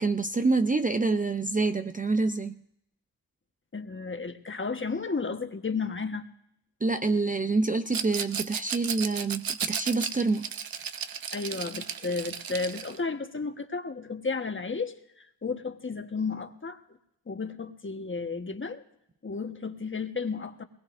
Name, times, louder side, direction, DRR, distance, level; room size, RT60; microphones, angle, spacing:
voice 1, 0.0-2.5 6.8-10.5, right 3 dB, 20° right, 8 dB, 0.5 m, -27 dB
voice 2, 3.7-6.3 11.3-16.8 17.3-18.8 19.2-20.6, left 4 dB, 30° left, 7 dB, 1.3 m, -33 dB
Rattle, 7.9-13.0, right 7 dB, 60° right, 0.9 m, -34 dB
22.0 x 20.0 x 2.6 m, 0.78 s
cardioid pair, 60°, 40 cm